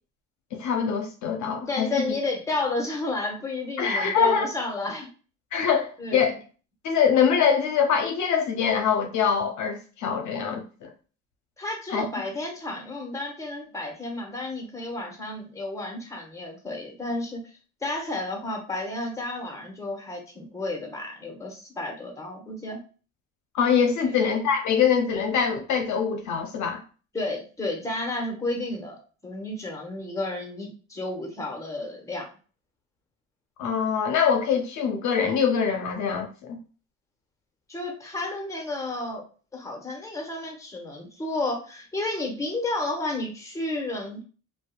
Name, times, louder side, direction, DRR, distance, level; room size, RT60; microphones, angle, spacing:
voice 1, 0.5-2.1 3.8-4.5 5.5-6.4 6.8-10.9 11.9-12.1 23.5-26.8 33.6-36.6, left 7 dB, 60° left, 0.6 m, -24 dB
voice 2, 1.7-5.1 6.0-6.4 11.6-17.4 17.8-22.8 24.0-24.2 27.1-32.3 37.7-39.2 39.5-44.2, left 2 dB, 10° left, 0.8 m, -32 dB
2.6 x 2.2 x 2.3 m
supercardioid pair, 75°, 34 cm